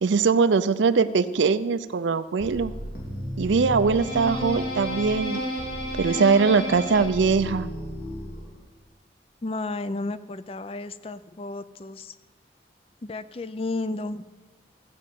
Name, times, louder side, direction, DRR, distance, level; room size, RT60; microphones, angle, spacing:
voice 1, 0.0-2.7 3.4-5.4 6.0-7.7, right 5 dB, 90° right, 12 dB, 0.5 m, -21 dB
sound 1, 2.4-8.6, equal, 55° left, 3.0 m, -32 dB
voice 2, 9.4-12.1 13.0-14.2, left 2 dB, 30° left, 14 dB, 0.4 m, -32 dB
14.5 x 5.4 x 8.3 m, 1.3 s
head